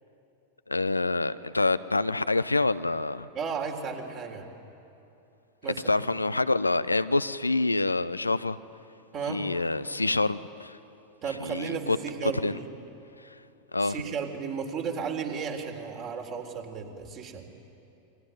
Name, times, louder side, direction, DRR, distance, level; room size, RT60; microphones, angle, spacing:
voice 1, 0.7-3.3 5.9-8.6 9.3-10.8 11.4-12.0 12.2-12.6 13.7-13.9, left 2 dB, 80° left, 14 dB, 0.6 m, -26 dB
voice 2, 3.3-4.5 5.6-5.8 9.1-9.5 11.2-12.7 13.8-17.4, right 6 dB, 35° right, 3 dB, 3.7 m, -34 dB
28.0 x 23.0 x 9.2 m, 2.8 s
figure-of-eight pair, 90°, 0 cm